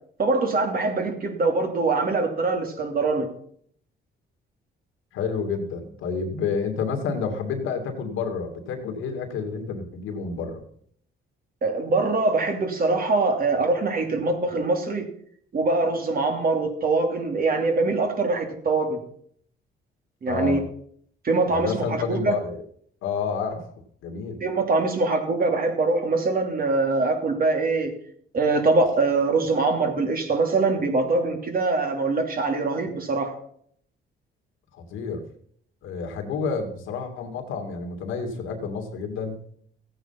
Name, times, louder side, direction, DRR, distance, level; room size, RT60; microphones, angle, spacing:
voice 1, 0.2-3.3 11.6-15.1 15.5-19.0 20.2-20.6 21.2-22.4 24.4-27.9 28.3-33.3, right 3 dB, 45° right, 4 dB, 2.9 m, -23 dB
voice 2, 5.1-10.6 20.3-20.6 21.5-22.6 23.0-23.6 24.0-24.4 34.9-35.2 35.8-39.4, left 5 dB, 90° left, 4 dB, 2.5 m, -29 dB
15.5 x 8.9 x 5.8 m, 0.64 s
cardioid pair, 90°, 20 cm